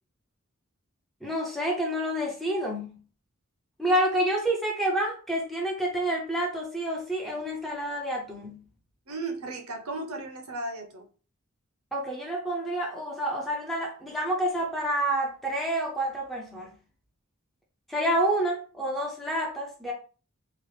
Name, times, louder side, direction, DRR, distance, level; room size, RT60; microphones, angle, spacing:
voice 1, 1.2-2.9 3.8-8.6 11.9-16.7 17.9-19.9, right 1 dB, ahead, -2 dB, 0.5 m, -28 dB
voice 2, 9.1-11.1, right 2 dB, 90° right, 4 dB, 0.7 m, -35 dB
2.9 x 2.4 x 3.2 m, 0.39 s
head